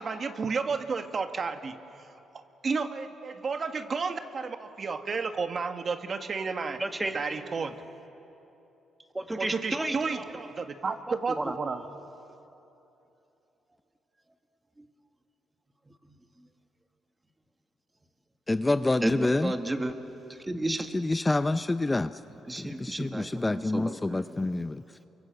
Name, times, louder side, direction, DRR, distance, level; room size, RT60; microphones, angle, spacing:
voice 1, 0.0-1.8 2.3-6.8 7.1-7.8 9.4-11.8, right 4 dB, 40° right, 7 dB, 1.5 m, -32 dB
voice 2, 6.8-7.4 9.1-10.3 11.1-11.6 16.1-16.2 19.0-19.9 20.3-21.0 22.3-24.5, right 1 dB, 15° right, 6 dB, 1.8 m, -33 dB
voice 3, 18.5-19.5 20.9-22.1 22.6-24.8, left 2 dB, 15° left, 12 dB, 0.6 m, -27 dB
28.0 x 24.0 x 7.8 m, 2.9 s
cardioid pair, 90°, 0 cm